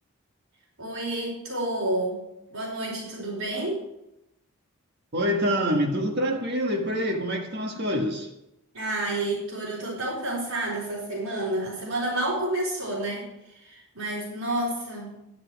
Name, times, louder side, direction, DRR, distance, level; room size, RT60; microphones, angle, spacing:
voice 1, 0.8-2.2 2.5-3.8 8.7-15.1, right 1 dB, 85° right, -9 dB, 4.2 m, -30 dB
voice 2, 5.1-8.3, equal, 50° right, 3 dB, 1.6 m, -26 dB
11.5 x 10.0 x 4.8 m, 0.89 s
head